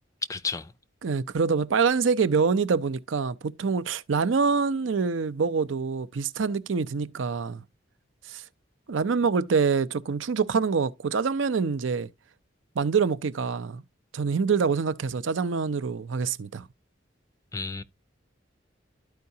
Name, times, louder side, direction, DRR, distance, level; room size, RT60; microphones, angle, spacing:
voice 1, 0.3-0.7 17.5-17.8, left 4 dB, 15° left, 0.4 m, -32 dB
voice 2, 1.0-7.6 8.3-8.4 8.9-12.1 12.8-13.8 14.1-16.6, right 5 dB, 80° right, 0.5 m, -25 dB
12.5 x 4.7 x 2.7 m
head